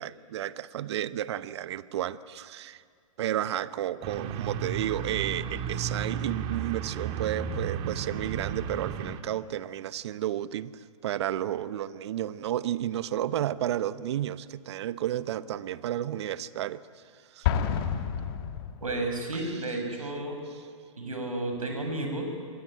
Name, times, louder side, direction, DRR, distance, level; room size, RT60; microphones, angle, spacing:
voice 1, 0.0-2.8 3.2-16.8 17.3-17.5, right 12 dB, 50° right, 15 dB, 1.0 m, -32 dB
sound 1, 4.0-9.2, right 7 dB, 30° right, 1.9 m, -34 dB
Explosion, 17.4-19.2, left 8 dB, 45° left, 2.0 m, -29 dB
voice 2, 18.8-20.4 21.0-22.3, right 2 dB, 80° right, 3 dB, 7.2 m, -32 dB
26.5 x 22.5 x 9.0 m, 2.1 s
figure-of-eight pair, 115°, 18 cm